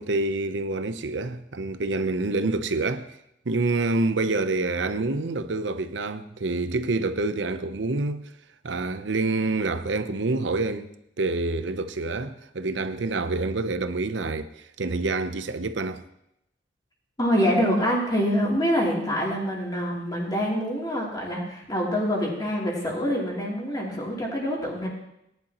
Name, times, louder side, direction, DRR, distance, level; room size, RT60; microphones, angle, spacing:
voice 1, 0.0-3.2 3.5-8.2 8.6-10.9 11.2-16.0, right 3 dB, 80° right, 0.7 m, -27 dB
voice 2, 17.2-24.9, equal, 20° left, 3.0 m, -25 dB
18.5 x 10.5 x 3.0 m
head